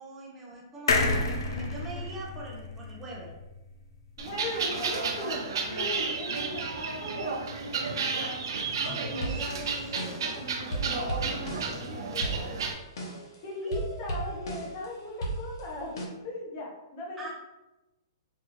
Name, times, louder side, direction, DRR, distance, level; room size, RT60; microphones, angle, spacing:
voice 1, 0.0-3.3 13.6-14.5 17.2-17.3, right 2 dB, 10° right, -4 dB, 0.8 m, -43 dB
sound 1, 0.9-4.4 4.7-4.8 5.0-5.1, left 3 dB, 80° left, 0.7 m, -30 dB
voice 2, 4.2-5.4 5.7-8.4 8.8-12.6 13.4-17.3, left 1 dB, 30° left, -2 dB, 0.9 m, -39 dB
sound 2, 4.2-12.7, right 4 dB, 65° right, 0.6 m, -32 dB
sound 3, 8.8-10.4 10.7-11.9 12.2-13.4 13.7-14.9 15.2-16.1, right 1 dB, 60° left, 1.0 m, -36 dB
4.8 x 2.6 x 3.1 m, 1.0 s
hypercardioid pair, 175°, 2 cm